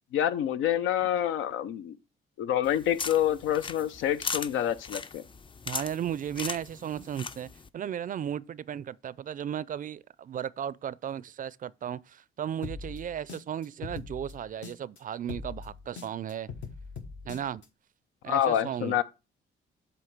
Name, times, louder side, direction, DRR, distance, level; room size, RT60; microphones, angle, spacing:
voice 1, 0.1-2.0 2.4-5.2 18.3-19.0, left 11 dB, 90° left, 0.6 m, -27 dB
sound 1, 2.6-7.7, left 5 dB, 25° left, 0.4 m, -38 dB
voice 2, 5.7-16.5 17.2-17.6 18.2-19.0, right 9 dB, 45° right, 0.4 m, -35 dB
sound 2, 12.6-15.0 15.3-17.7, left 5 dB, 70° left, 1.2 m, -41 dB
7.9 x 3.0 x 5.9 m
cardioid pair, 90°, 20 cm